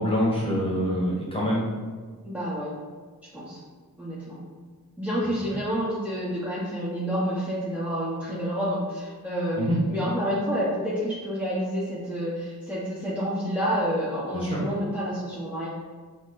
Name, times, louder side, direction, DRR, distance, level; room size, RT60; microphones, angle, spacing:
voice 1, 0.0-1.7 9.6-9.8 14.3-14.6, equal, 15° left, -5 dB, 1.3 m, -25 dB
voice 2, 2.2-2.7 3.2-3.6 4.0-4.4 5.0-15.7, equal, 5° right, -10 dB, 0.9 m, -29 dB
6.0 x 2.1 x 3.8 m, 1.5 s
wide cardioid pair, 105°, 37 cm